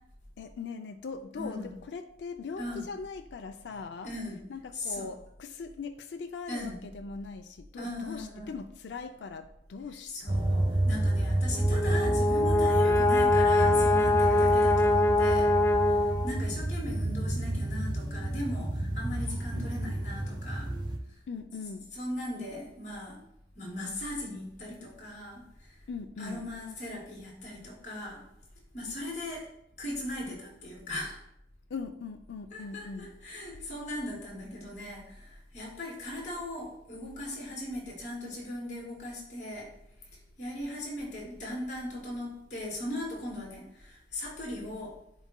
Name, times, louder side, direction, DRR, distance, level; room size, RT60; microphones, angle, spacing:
voice 1, 0.4-10.4 21.3-21.9 25.9-26.5 31.7-33.2 33.6-33.7, left 4 dB, 80° left, 6 dB, 0.4 m, -41 dB
voice 2, 1.3-1.7 2.6-2.9 3.7-4.4 4.7-5.1 6.5-6.8 7.8-8.5 10.1-20.7 21.6-23.2 23.6-25.8 26.2-28.2 28.7-29.4 29.8-31.2 32.5-39.7 40.4-44.9, left 1 dB, 45° left, -3 dB, 2.5 m, -38 dB
sound 1, 10.3-21.0, right 1 dB, 25° right, 0.7 m, -30 dB
Brass instrument, 11.5-16.6, left 2 dB, 15° left, 0.4 m, -24 dB
11.0 x 4.1 x 2.2 m, 0.78 s
head